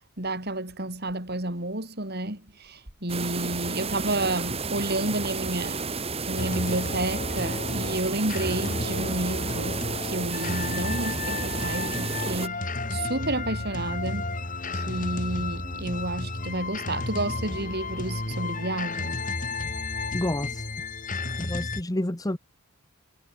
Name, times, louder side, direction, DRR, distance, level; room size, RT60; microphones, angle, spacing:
voice 1, 0.2-5.8 6.3-14.3 14.7-19.2, right 1 dB, 45° right, 5.1 m, -31 dB
sound 1, 3.1-12.5, right 4 dB, 25° right, 1.8 m, -32 dB
sound 2, 6.4-21.8, left 2 dB, 35° left, 5.9 m, -32 dB
voice 2, 20.1-20.6 21.4-22.4, left 1 dB, 15° left, 1.1 m, -29 dB
head